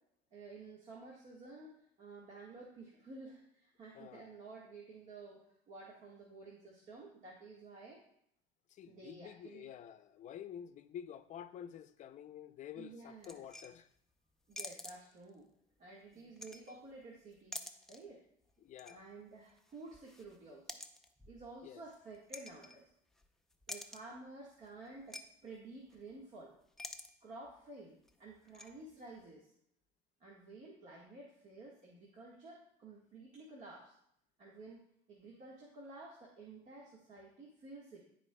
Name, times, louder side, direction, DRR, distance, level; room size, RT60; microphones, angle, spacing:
voice 1, 0.3-5.4 5.7-8.0 8.9-9.7 12.8-13.4 14.5-15.5 15.8-17.6 17.9-18.2 18.9-20.7 21.3-22.8 23.7-26.5 27.2-29.5 30.2-33.9 34.4-34.8 35.1-38.0, right 3 dB, 50° right, 1.6 m, -52 dB
voice 2, 3.9-4.4 8.7-13.9 18.6-19.0 21.6-21.8, left 9 dB, 50° left, 0.6 m, -49 dB
sound 1, 13.2-14.0 14.5-15.4 16.1-17.0 17.3-18.1 18.5-19.0 19.3-23.3 23.5-24.2 24.6-24.7 25.0-25.2 25.5-25.6 25.9-26.2 26.6-27.1 27.5-27.6 28.1-28.7, left 1 dB, 5° left, 0.6 m, -49 dB
12.5 x 4.4 x 2.3 m
supercardioid pair, 90°, 16 cm